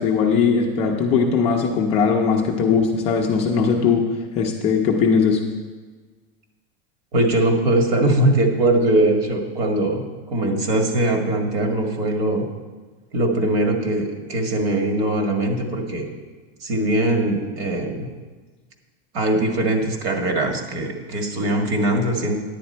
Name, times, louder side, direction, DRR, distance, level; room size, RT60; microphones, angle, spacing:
voice 1, 0.0-4.1 4.3-5.4, left 5 dB, 20° left, 0 dB, 0.4 m, -19 dB
voice 2, 7.1-12.5 13.1-16.1 16.6-18.1 19.1-22.4, right 1 dB, 65° right, 3 dB, 1.8 m, -21 dB
10.5 x 9.0 x 4.3 m, 1.4 s
supercardioid pair, 180°, 32 cm